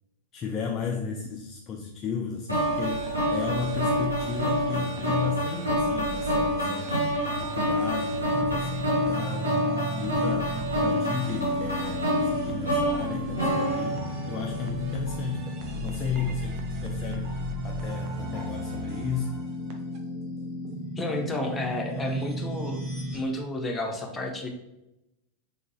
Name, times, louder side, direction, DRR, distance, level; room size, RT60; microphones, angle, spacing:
voice 1, 0.3-7.0 7.3-9.7 10.0-19.4, left 6 dB, 30° left, 3 dB, 0.4 m, -34 dB
sound 1, 2.5-20.0, right 1 dB, 45° right, 0.6 m, -38 dB
sound 2, 2.5-14.7, equal, 90° right, 1.4 m, -28 dB
sound 3, 8.3-23.2, equal, 20° right, 0.9 m, -35 dB
voice 2, 21.0-22.8 23.1-24.5, left 1 dB, 15° left, 1 dB, 0.8 m, -31 dB
3.7 x 3.7 x 2.8 m, 0.90 s
figure-of-eight pair, 90°, 0 cm